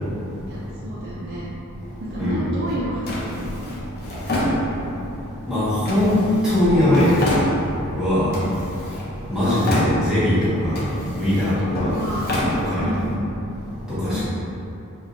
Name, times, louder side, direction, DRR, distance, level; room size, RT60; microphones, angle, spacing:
voice 1, 0.5-1.5 2.0-3.8 8.2-8.6 11.9-12.3 12.8-13.3 14.1-14.3, right 1 dB, 50° right, -7 dB, 0.4 m, -30 dB
Drawer open or close, 3.1-5.1 5.9-7.9 8.3-9.1 9.4-10.3 10.7-13.1, left 1 dB, 45° left, 0.6 m, -27 dB
voice 2, 5.5-6.2 6.4-7.4 8.0-8.3 9.3-10.8 11.2-12.0 12.7-12.9 13.9-14.3, left 1 dB, 5° right, -14 dB, 1.4 m, -20 dB
4.5 x 2.7 x 2.5 m, 2.8 s
head